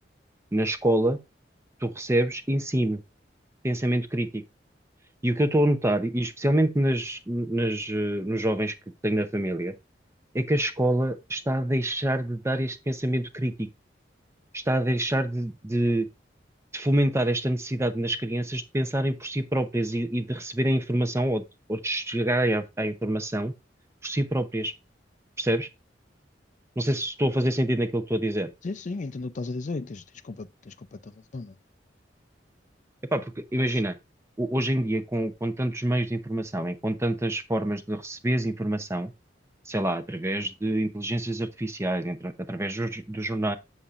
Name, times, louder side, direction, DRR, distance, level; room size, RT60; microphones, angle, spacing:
voice 1, 0.5-1.2 1.8-3.0 3.6-4.4 5.2-8.7 9.0-9.7 10.3-13.7 14.5-16.1 16.7-21.4 21.7-23.5 24.0-24.7 25.4-25.7 26.8-28.5 33.1-33.9 34.4-39.1 39.7-43.6, right 1 dB, 15° right, 0.6 m, -26 dB
voice 2, 28.6-31.6, left 3 dB, 45° left, 0.4 m, -35 dB
8.0 x 7.1 x 2.4 m
head